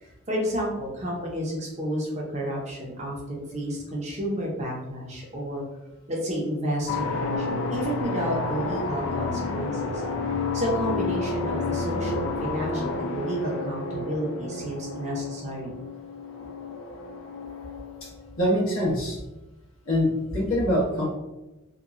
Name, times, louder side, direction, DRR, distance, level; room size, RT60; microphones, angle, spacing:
voice 1, 0.0-5.6 6.1-10.0 10.5-15.7, equal, 30° right, -3 dB, 0.6 m, -31 dB
sound 1, 6.9-18.3, left 3 dB, 60° left, 0.3 m, -30 dB
voice 2, 18.4-19.2 19.8-21.1, equal, 80° left, -5 dB, 1.0 m, -24 dB
2.8 x 2.2 x 2.4 m, 1.0 s
head